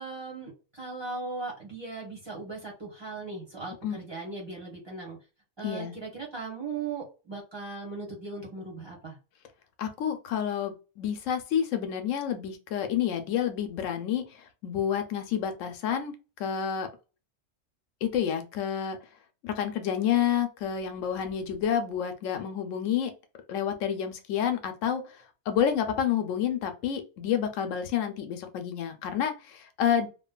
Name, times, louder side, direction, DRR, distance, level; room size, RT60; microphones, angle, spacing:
voice 1, 0.0-5.2 5.6-9.2, right 4 dB, 25° right, -4 dB, 1.0 m, -38 dB
voice 2, 5.6-6.0 9.8-16.9 18.0-19.0 19.4-23.1 23.5-30.1, left 9 dB, 85° left, 7 dB, 1.0 m, -29 dB
3.1 x 2.1 x 2.3 m, 0.32 s
omnidirectional pair, 1.3 m